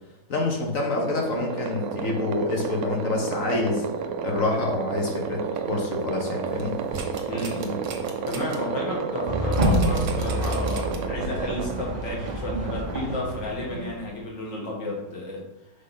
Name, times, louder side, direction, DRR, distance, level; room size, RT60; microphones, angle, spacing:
voice 1, 0.3-3.8 4.2-6.8, left 2 dB, 50° left, 1 dB, 1.5 m, -27 dB
sound 1, 1.0-13.6, right 6 dB, 70° right, 0.9 m, -31 dB
sound 2, 6.5-8.6 8.9-9.1 9.5-11.2 11.6-11.7, right 5 dB, 90° right, 1.7 m, -38 dB
voice 2, 7.3-7.9 8.3-15.4, left 2 dB, 80° left, -2 dB, 2.4 m, -32 dB
sound 3, 9.3-14.1, equal, 30° right, 0.9 m, -27 dB
6.8 x 3.7 x 5.6 m, 0.95 s
omnidirectional pair, 1.9 m